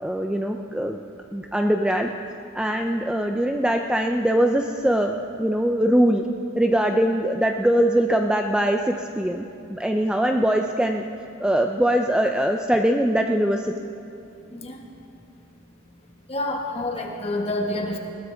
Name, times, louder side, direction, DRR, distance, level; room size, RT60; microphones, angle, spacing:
voice 1, 0.0-1.0 1.3-2.1 2.5-6.3 6.6-11.0 11.4-13.7, right 1 dB, 5° right, 3 dB, 0.4 m, -22 dB
voice 2, 14.5-14.8 16.3-18.0, left 1 dB, 30° left, 2 dB, 1.5 m, -28 dB
20.5 x 16.5 x 3.5 m, 2.7 s
head